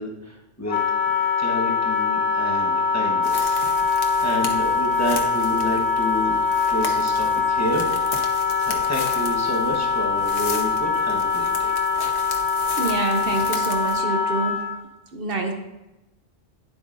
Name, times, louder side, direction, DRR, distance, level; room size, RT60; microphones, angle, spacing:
voice 1, 0.0-6.4 6.7-7.9 8.4-11.7, equal, 15° left, -2 dB, 1.0 m, -30 dB
Wind instrument woodwind instrument, 0.7-14.8, left 5 dB, 45° left, 1.2 m, -23 dB
Footsteps Dry Twigs A, 3.2-14.0, left 4 dB, 70° left, 1.2 m, -36 dB
voice 2, 12.8-14.6 15.1-15.5, right 3 dB, 60° right, 3 dB, 0.9 m, -26 dB
9.8 x 7.7 x 2.6 m, 0.98 s
omnidirectional pair, 1.2 m